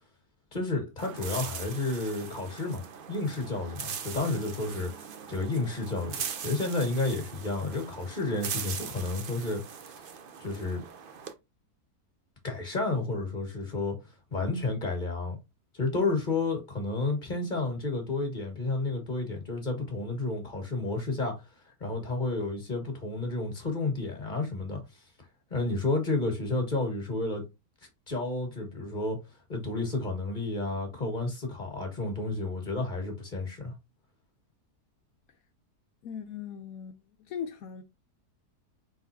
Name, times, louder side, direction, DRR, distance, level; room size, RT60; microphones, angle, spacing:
voice 1, 0.5-4.9 5.3-6.2 6.4-10.0 10.4-10.8 12.4-14.0 14.3-15.4 15.7-21.4 21.8-24.8 25.5-27.4 28.1-29.2 29.5-33.7, left 2 dB, 30° left, 1.6 m, -31 dB
sound 1, 1.0-11.3, right 7 dB, 60° right, 0.5 m, -40 dB
voice 2, 36.0-37.8, left 8 dB, 70° left, 1.0 m, -39 dB
4.9 x 4.0 x 2.7 m
omnidirectional pair, 1.7 m